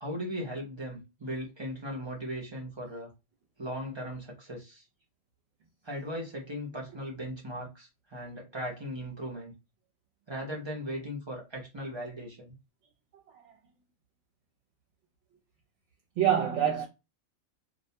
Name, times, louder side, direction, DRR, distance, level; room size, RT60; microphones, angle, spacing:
voice 1, 0.0-3.1 3.6-4.8 5.8-9.5 10.3-12.6, equal, 35° right, 0.4 m, -38 dB
voice 2, 16.2-16.9, right 10 dB, 65° right, 0.9 m, -26 dB
2.4 x 2.1 x 2.7 m
omnidirectional pair, 1.4 m